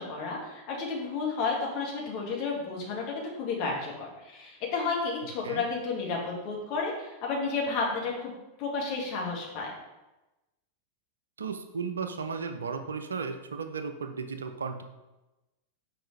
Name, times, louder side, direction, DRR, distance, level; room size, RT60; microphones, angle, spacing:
voice 1, 0.0-8.3 8.6-9.7, left 4 dB, 45° left, -2 dB, 2.1 m, -32 dB
voice 2, 11.4-14.8, right 5 dB, 70° right, 8 dB, 0.6 m, -35 dB
6.4 x 4.9 x 4.7 m, 1.0 s
figure-of-eight pair, 90°, 0 cm